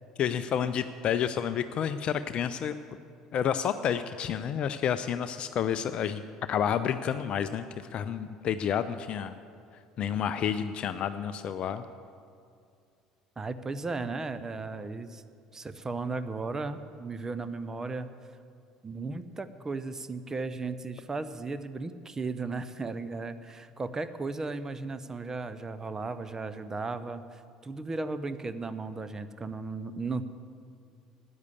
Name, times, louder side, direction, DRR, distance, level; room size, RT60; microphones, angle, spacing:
voice 1, 0.2-2.7 3.3-6.2 6.5-7.6 7.9-9.3 10.0-11.9, left 8 dB, 40° left, 12 dB, 0.5 m, -30 dB
voice 2, 13.4-15.2 15.5-18.1 18.8-30.2, right 3 dB, 20° right, 11 dB, 0.7 m, -35 dB
13.0 x 9.7 x 8.3 m, 2.3 s
figure-of-eight pair, 60°, 3 cm